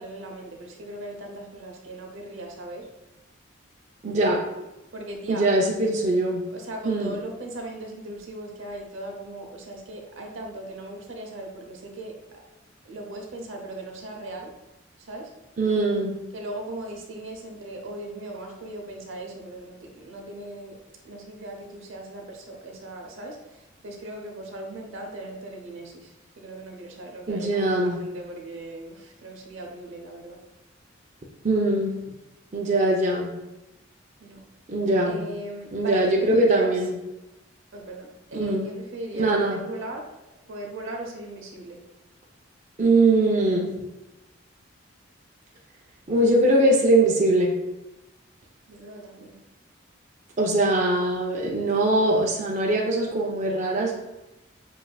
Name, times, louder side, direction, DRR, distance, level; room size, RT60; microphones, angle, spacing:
voice 1, 0.0-2.9 4.9-5.5 6.5-12.2 12.8-14.5 15.0-15.3 16.3-20.8 21.0-23.4 23.8-30.4 34.2-34.4 35.0-36.7 37.7-40.0 40.5-41.8 48.7-49.4, right 1 dB, 75° right, 1 dB, 0.8 m, -38 dB
voice 2, 4.0-4.4 5.3-6.4 6.8-7.2 15.6-16.2 27.3-28.0 31.4-32.0 32.5-33.3 34.7-35.2 35.7-37.0 38.3-38.7 39.1-39.6 42.8-43.7 46.1-47.5 50.4-53.9, right 2 dB, 35° right, -3 dB, 0.5 m, -22 dB
7.2 x 2.6 x 2.3 m, 0.99 s
head